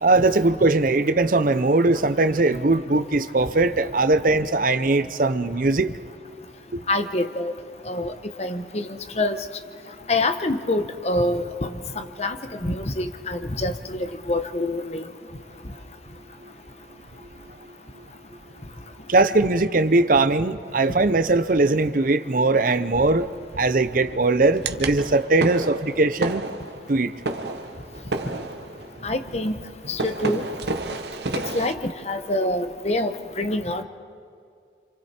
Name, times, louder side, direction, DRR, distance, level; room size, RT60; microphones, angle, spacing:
voice 1, 0.0-6.0 19.1-23.3 23.6-26.4 26.9-27.1, right 2 dB, 50° right, 11 dB, 0.7 m, -20 dB
voice 2, 6.9-7.5 7.9-8.1 8.4-9.4 10.1-12.4 12.6-15.0 29.0-29.6 29.9-30.4 31.5-33.8, left 2 dB, 35° left, 8 dB, 1.1 m, -26 dB
sound 1, 22.9-31.7, right 2 dB, 70° right, 1.2 m, -32 dB
30.0 x 27.0 x 4.4 m, 2.3 s
head